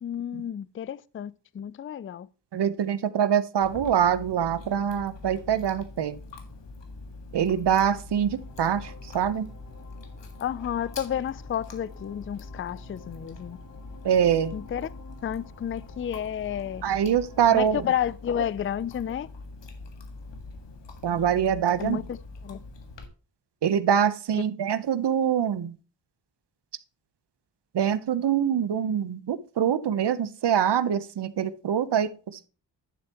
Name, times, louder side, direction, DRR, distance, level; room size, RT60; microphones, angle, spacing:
voice 1, 0.0-2.3 10.4-13.6 14.5-14.9 15.2-16.8 17.5-19.3 21.8-22.2 22.4-22.6 24.3-24.4, left 9 dB, 30° left, 0.4 m, -31 dB
voice 2, 2.5-6.2 7.3-9.5 14.0-14.6 16.8-17.9 21.0-22.0 23.6-25.8 27.7-32.5, right 9 dB, 70° right, 0.9 m, -24 dB
Chewing mastication, 3.6-23.1, left 3 dB, 80° left, 1.8 m, -44 dB
sound 1, 8.1-18.1, left 3 dB, 50° left, 2.3 m, -52 dB
11.5 x 6.9 x 3.0 m
wide cardioid pair, 105°, 42 cm